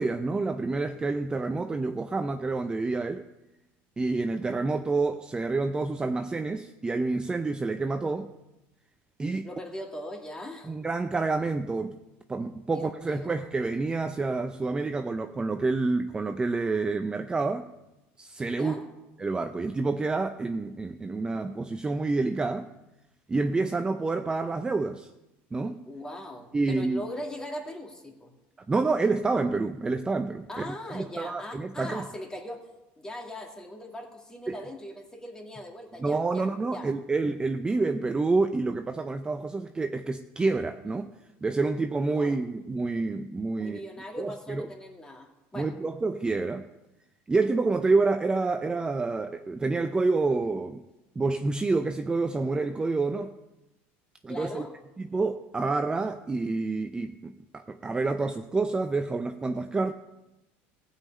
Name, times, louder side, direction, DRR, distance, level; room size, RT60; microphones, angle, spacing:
voice 1, 0.0-3.2 4.0-8.3 9.2-9.5 10.6-12.0 12.3-17.7 18.2-18.8 19.2-22.7 23.3-25.1 25.5-25.8 26.5-27.0 28.7-32.0 34.5-34.6 36.0-41.1 41.4-43.8 44.2-44.7 45.6-46.7 47.3-50.8 51.2-53.4 54.2-54.6 55.1-59.9, right 3 dB, 15° right, 7 dB, 0.6 m, -28 dB
voice 2, 9.4-10.8 12.7-13.4 18.5-18.9 25.9-28.3 30.5-32.7 33.0-36.9 42.1-42.4 43.6-45.7 54.3-54.7, left 1 dB, 10° left, 2 dB, 2.2 m, -40 dB
15.5 x 5.7 x 8.4 m, 0.98 s
supercardioid pair, 125°, 6 cm